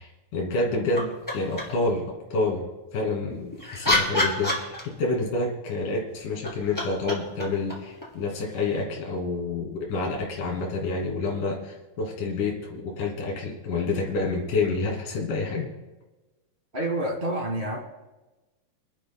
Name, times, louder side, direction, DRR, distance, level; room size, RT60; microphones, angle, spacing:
voice 1, 0.0-2.6 2.9-15.7, left 3 dB, 65° left, 0 dB, 3.9 m, -28 dB
sound 1, 0.9-1.9 3.3-5.2 6.2-8.8 10.9-11.0, left 1 dB, 10° left, 1.3 m, -29 dB
voice 2, 16.7-17.8, right 1 dB, 60° right, 1 dB, 0.5 m, -28 dB
27.0 x 11.5 x 2.2 m, 1.1 s
omnidirectional pair, 4.1 m